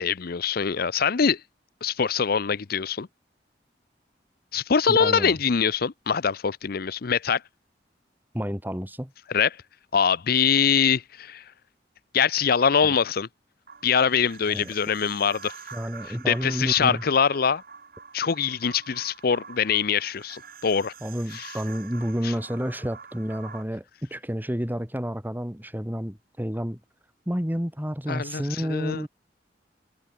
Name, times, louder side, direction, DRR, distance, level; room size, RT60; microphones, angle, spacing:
voice 1, 0.0-1.4 1.8-3.1 4.5-7.4 9.3-9.5 9.9-11.5 12.1-13.3 13.8-15.6 16.1-17.6 18.1-20.9 21.3-21.5 22.2-22.3 28.1-29.0, left 6 dB, 60° left, 0.6 m, -23 dB
voice 2, 4.9-5.4 8.3-9.1 12.8-12.9 14.4-14.7 15.7-17.0 21.0-26.8 27.3-29.1, equal, 10° right, 3.1 m, -30 dB
sound 1, 13.7-23.6, right 6 dB, 60° right, 3.7 m, -46 dB
head